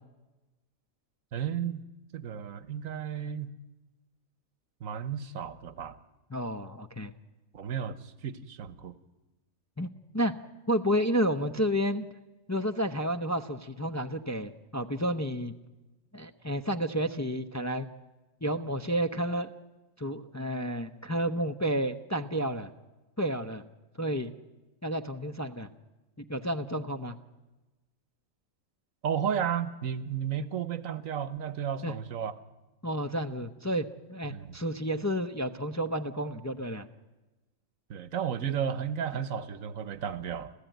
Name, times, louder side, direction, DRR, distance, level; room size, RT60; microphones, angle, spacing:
voice 1, 1.3-1.8 2.1-3.5 4.8-6.0 7.5-8.9 29.0-32.3 34.3-34.5 37.9-40.5, right 8 dB, 85° right, 15 dB, 1.4 m, -33 dB
voice 2, 6.3-7.1 9.8-9.9 10.1-10.3 10.7-12.1 12.5-15.5 16.1-17.9 18.4-19.5 20.0-22.7 23.2-23.6 24.0-24.3 24.8-25.7 26.2-27.2 31.8-32.0 32.8-36.9, equal, 15° left, 5 dB, 0.7 m, -31 dB
29.5 x 14.0 x 9.2 m, 1.1 s
omnidirectional pair, 1.4 m